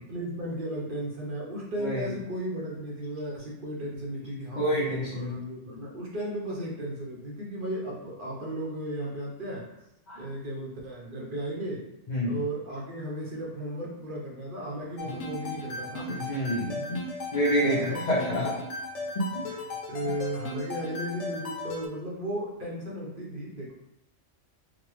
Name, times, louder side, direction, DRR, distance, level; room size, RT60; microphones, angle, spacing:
voice 1, 0.0-9.7 10.2-11.9 12.2-16.4 17.6-18.0 19.9-23.7, right 1 dB, 50° right, -3 dB, 0.8 m, -35 dB
voice 2, 1.8-2.1 4.5-5.4 10.1-10.2 12.1-12.4 16.1-17.0 17.3-18.6 19.3-19.5, equal, 45° left, -7 dB, 0.7 m, -28 dB
sound 1, 15.0-21.9, left 2 dB, 75° left, 1.0 m, -36 dB
4.0 x 2.1 x 3.1 m, 0.88 s
omnidirectional pair, 1.3 m